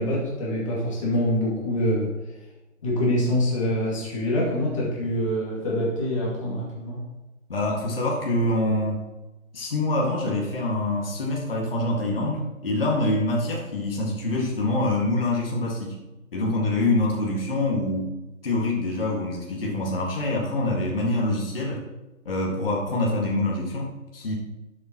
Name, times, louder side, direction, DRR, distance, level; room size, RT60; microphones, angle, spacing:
voice 1, 0.0-2.1 2.8-7.0, left 1 dB, 20° left, -5 dB, 2.2 m, -25 dB
voice 2, 7.5-9.0 9.5-16.0 16.3-18.2 18.4-21.8 22.3-24.3, left 2 dB, 40° left, -2 dB, 1.8 m, -25 dB
11.5 x 7.4 x 2.9 m, 1.1 s
hypercardioid pair, 170°, 43 cm